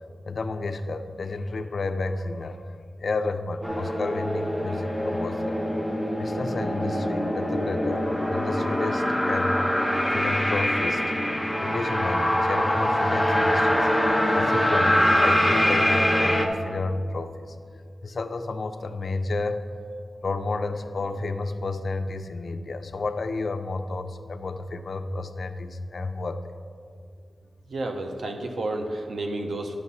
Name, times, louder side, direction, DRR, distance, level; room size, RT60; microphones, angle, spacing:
voice 1, 0.2-5.6 6.2-9.6 10.1-11.0 11.6-13.9 14.4-17.5 18.0-19.7 20.2-26.5, left 3 dB, 55° left, 8 dB, 0.5 m, -31 dB
sound 1, 3.6-16.5, equal, ahead, 0.8 m, -24 dB
voice 2, 27.7-29.8, right 2 dB, 80° right, 4 dB, 0.9 m, -31 dB
11.0 x 6.5 x 4.2 m, 2.2 s
wide cardioid pair, 115°, 0 cm